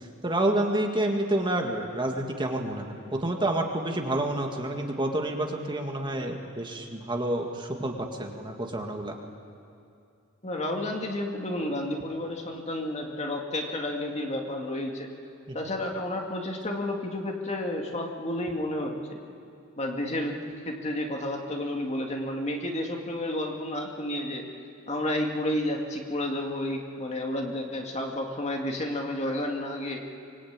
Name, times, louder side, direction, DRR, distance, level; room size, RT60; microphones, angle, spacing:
voice 1, 0.2-9.2 15.5-15.6, right 1 dB, 25° right, 2 dB, 1.9 m, -29 dB
voice 2, 10.4-15.1 15.5-19.2 19.8-24.5 24.9-30.1, left 1 dB, 35° left, 1 dB, 2.3 m, -31 dB
24.5 x 22.5 x 8.9 m, 2.4 s
head